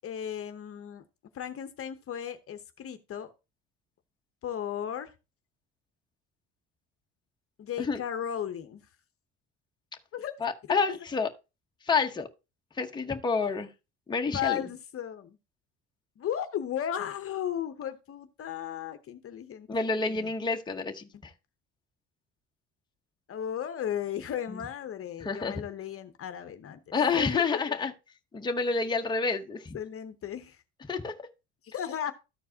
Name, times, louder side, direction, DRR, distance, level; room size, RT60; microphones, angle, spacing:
voice 1, 0.0-1.0 1.3-3.3 4.4-5.1 7.6-8.8 10.1-10.3 10.7-11.0 14.3-15.4 16.2-19.7 20.0-20.3 23.3-27.4 29.7-30.6 31.6-32.1, left 9 dB, 45° left, 0.8 m, -35 dB
voice 2, 10.4-11.3 11.9-12.3 12.8-13.7 14.1-14.6 19.7-21.3 24.5-24.6 25.2-25.6 26.9-27.9 28.3-29.8 30.9-31.1, left 4 dB, 15° left, 0.9 m, -29 dB
13.5 x 4.6 x 2.8 m
cardioid pair, 105°, 33 cm